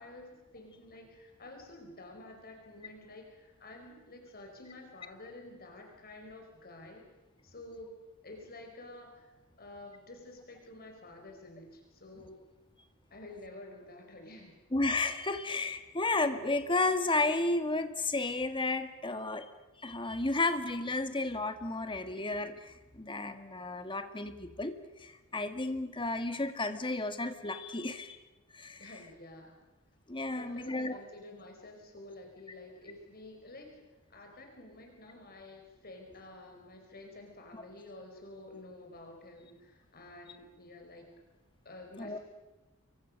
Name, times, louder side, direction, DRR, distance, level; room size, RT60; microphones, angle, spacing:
voice 1, 0.0-7.0 7.4-8.0 8.2-12.3 13.1-14.6 28.8-29.6 30.3-41.1 41.6-42.2, left 2 dB, 45° left, 2 dB, 5.0 m, -50 dB
voice 2, 14.7-19.5 19.8-28.2 28.5-28.9 30.1-31.0 37.5-37.6 42.0-42.2, left 2 dB, 25° left, 8 dB, 1.9 m, -32 dB
28.5 x 24.0 x 6.6 m, 1.0 s
head